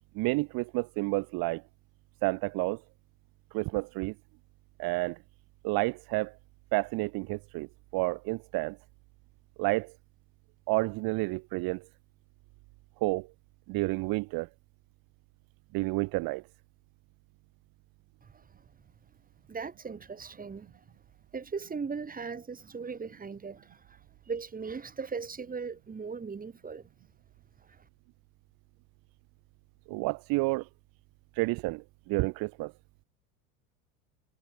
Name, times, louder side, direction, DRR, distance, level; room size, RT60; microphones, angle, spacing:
voice 1, 0.2-1.6 2.2-2.8 3.5-4.1 4.8-5.2 5.6-6.3 6.7-7.7 7.9-8.8 9.6-9.9 10.7-11.8 13.0-13.3 13.7-14.5 15.7-16.4 29.9-30.7 31.4-32.7, right 25 dB, 55° right, 3.8 m, -30 dB
voice 2, 19.5-20.7 21.3-24.0 24.3-26.9 27.7-27.8, right 5 dB, 20° right, 7.1 m, -38 dB
hypercardioid pair, 90°, 42 cm